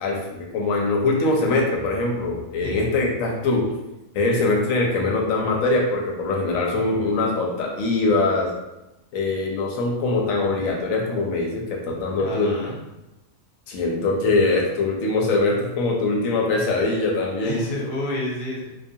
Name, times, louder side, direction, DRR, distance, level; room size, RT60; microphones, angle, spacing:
voice 1, 0.0-3.7 4.1-8.5 9.1-12.6 13.7-17.6, left 2 dB, 80° left, -1 dB, 1.0 m, -22 dB
voice 2, 12.2-12.8 17.4-18.7, left 1 dB, 50° left, -3 dB, 0.7 m, -29 dB
2.5 x 2.3 x 2.6 m, 0.95 s
omnidirectional pair, 1.4 m